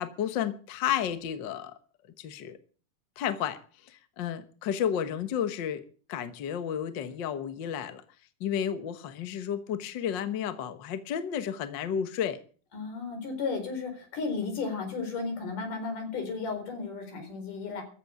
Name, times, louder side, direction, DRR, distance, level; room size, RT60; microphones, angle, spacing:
voice 1, 0.0-1.7 2.2-2.6 3.2-3.6 3.9-5.8 6.1-8.0 8.4-12.4, left 9 dB, 55° left, 1.3 m, -32 dB
voice 2, 12.7-17.8, left 4 dB, 75° left, 5.8 m, -34 dB
14.5 x 8.1 x 8.3 m
omnidirectional pair, 3.7 m